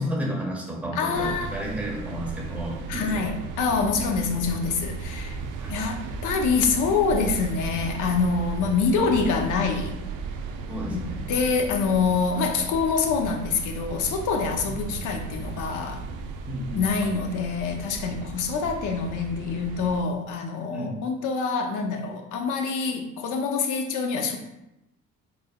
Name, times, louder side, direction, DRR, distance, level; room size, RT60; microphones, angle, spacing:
voice 1, 0.0-3.3 5.6-5.8 10.7-11.2 16.5-16.8 20.7-21.0, equal, 5° right, -3 dB, 1.1 m, -32 dB
voice 2, 0.9-1.5 2.9-5.4 5.7-10.0 10.9-16.0 16.7-24.4, left 5 dB, 85° left, 4 dB, 0.6 m, -26 dB
sound 1, 1.1-20.0, right 4 dB, 80° right, 0.5 m, -35 dB
4.0 x 3.7 x 2.2 m, 0.89 s
cardioid pair, 90°, 30 cm